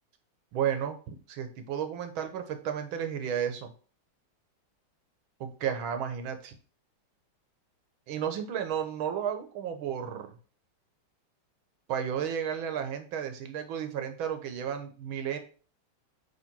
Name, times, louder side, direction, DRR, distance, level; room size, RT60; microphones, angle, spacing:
voice 1, 0.5-3.7 5.4-6.6 8.1-10.4 11.9-15.4, right 8 dB, 75° right, 7 dB, 1.7 m, -33 dB
8.1 x 3.1 x 4.5 m, 0.40 s
omnidirectional pair, 2.3 m